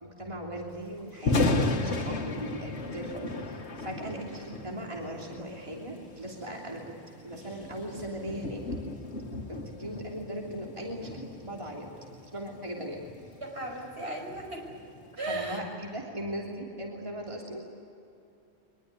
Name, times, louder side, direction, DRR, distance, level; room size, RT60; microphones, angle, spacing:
voice 1, 0.0-6.9 7.2-8.6 9.5-11.9 12.3-13.0 15.3-17.6, right 1 dB, 30° right, -1 dB, 3.2 m, -38 dB
Thunder, 1.1-15.3, left 2 dB, 85° left, 1.8 m, -35 dB
voice 2, 13.4-14.7 15.2-15.6, right 2 dB, 70° right, 1 dB, 6.0 m, -36 dB
24.0 x 22.0 x 9.7 m, 2.7 s
omnidirectional pair, 1.1 m